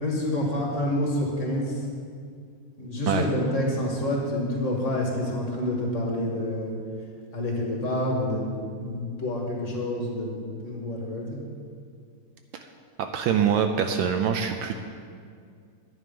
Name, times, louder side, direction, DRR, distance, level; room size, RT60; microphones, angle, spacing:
voice 1, 0.0-1.8 2.8-6.7 7.3-11.4, left 1 dB, 35° left, -1 dB, 1.9 m, -28 dB
voice 2, 13.0-14.8, right 7 dB, 75° right, 6 dB, 1.3 m, -24 dB
10.5 x 9.4 x 5.3 m, 2.2 s
omnidirectional pair, 2.4 m